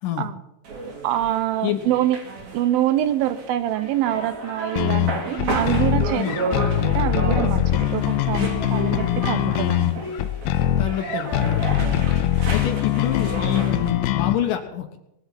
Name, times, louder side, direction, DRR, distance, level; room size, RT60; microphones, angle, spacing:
sound 1, 0.6-13.9, right 3 dB, 50° right, 3.8 m, -32 dB
voice 1, 1.0-2.2 2.5-10.0 11.8-12.1, right 12 dB, 75° right, 13 dB, 2.4 m, -25 dB
sound 2, 4.8-14.4, left 12 dB, 80° left, 2.6 m, -22 dB
voice 2, 10.8-12.0 12.5-15.0, left 11 dB, 65° left, 6 dB, 2.6 m, -27 dB
20.0 x 8.0 x 9.1 m, 0.86 s
omnidirectional pair, 4.5 m